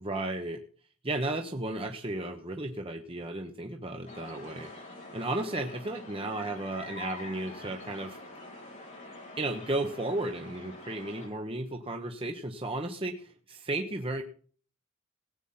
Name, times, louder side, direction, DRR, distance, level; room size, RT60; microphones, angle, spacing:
voice 1, 0.0-0.6 1.0-4.7 5.1-8.2 9.4-14.2, right 2 dB, 25° right, 4 dB, 1.1 m, -34 dB
sound 1, 4.1-11.3, left 2 dB, 35° left, 6.9 m, -45 dB
17.5 x 8.3 x 5.7 m, 0.43 s
head